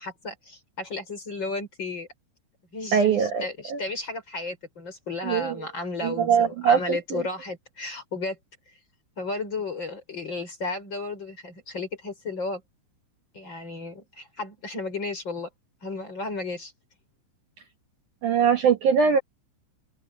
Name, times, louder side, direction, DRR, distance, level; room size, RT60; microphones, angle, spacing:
voice 1, 0.0-2.1 2.7-8.4 9.2-12.6 13.3-15.5 15.8-16.7, left 3 dB, 25° left, 5.3 m, -33 dB
voice 2, 2.9-3.8 5.3-5.5 6.0-7.0 18.2-19.2, right 7 dB, 85° right, 1.7 m, -21 dB
omnidirectional pair, 5.7 m